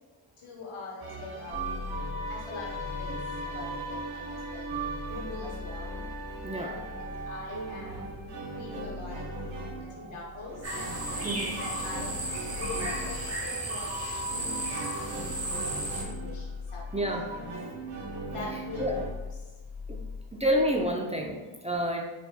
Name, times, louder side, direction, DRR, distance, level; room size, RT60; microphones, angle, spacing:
voice 1, 0.4-1.7 2.3-3.2 3.5-4.7 5.1-6.0 6.5-9.3 10.0-10.6 11.6-12.2 12.6-16.5 16.7-17.1 18.3-19.0, left 3 dB, 85° left, -3 dB, 1.1 m, -43 dB
sound 1, 1.0-19.1, right 2 dB, 90° right, 0.9 m, -39 dB
sound 2, 1.5-20.9, left 5 dB, 60° left, 0.8 m, -43 dB
voice 2, 6.4-6.8 10.0-10.1 11.2-11.6 16.9-17.3 18.5-19.0 19.9-20.0 20.3-22.0, equal, 15° right, 0 dB, 0.4 m, -29 dB
sound 3, 10.6-16.0, right 1 dB, 30° right, 1.0 m, -34 dB
4.2 x 3.3 x 2.2 m, 1.3 s
cardioid pair, 55°, 49 cm